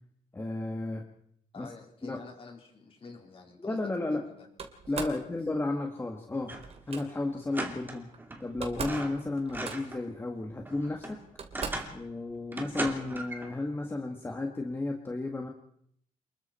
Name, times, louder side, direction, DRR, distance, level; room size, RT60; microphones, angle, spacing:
voice 1, 0.3-1.0 1.6-1.7 2.0-2.2 3.6-4.2 4.9-6.5 6.9-8.1 8.4-11.2 11.9-15.5, left 2 dB, 15° left, 2 dB, 1.9 m, -33 dB
voice 2, 1.5-3.8 4.1-4.5 4.9-5.4, left 4 dB, 40° left, 2 dB, 4.4 m, -48 dB
Slam, 4.6-5.2 6.6-7.0 8.1-8.2 8.5-9.1 9.4-10.1 10.8-10.9 11.4-12.0, right 5 dB, 45° right, 3.0 m, -39 dB
sound 1, 6.4-6.8 7.1-7.2 7.5-8.4 8.7-10.0 10.4-12.0 12.5-13.5, right 2 dB, 15° right, 2.6 m, -38 dB
28.5 x 21.5 x 4.5 m, 0.68 s
wide cardioid pair, 160°, 14 cm